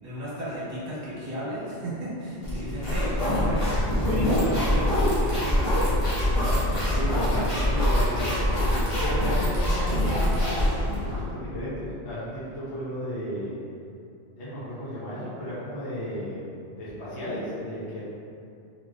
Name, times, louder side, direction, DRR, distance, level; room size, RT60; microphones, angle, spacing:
voice 1, 0.0-3.8 4.0-6.0 6.6-8.6, equal, 35° right, -9 dB, 0.9 m, -33 dB
sound 1, 2.4-11.2, left 1 dB, 30° left, 0.7 m, -24 dB
voice 2, 6.9-7.5 9.0-13.5 14.4-16.5 16.8-18.0, equal, 65° left, -9 dB, 1.1 m, -34 dB
3.1 x 2.9 x 2.4 m, 2.6 s
omnidirectional pair, 1.3 m